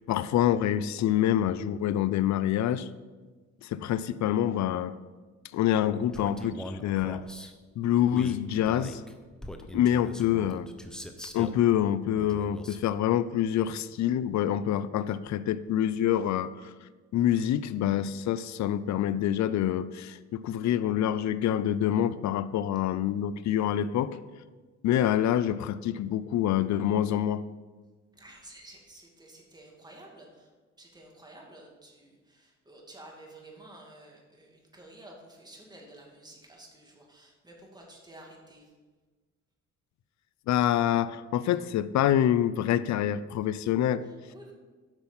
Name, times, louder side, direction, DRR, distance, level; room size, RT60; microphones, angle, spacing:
voice 1, 0.1-2.9 3.6-4.9 5.5-7.3 7.8-9.0 9.7-10.7 11.3-16.5 17.1-24.2 24.8-27.4 40.5-44.0, left 11 dB, 65° left, 15 dB, 0.5 m, -26 dB
Male speech man speaking, 6.1-7.5 8.1-11.6 12.1-12.9, equal, ahead, 0.8 m, -41 dB
voice 2, 28.1-30.5 30.8-38.7 44.0-44.5, right 1 dB, 15° right, -1 dB, 2.3 m, -51 dB
8.9 x 6.1 x 5.7 m, 1.3 s
cardioid pair, 90°, 30 cm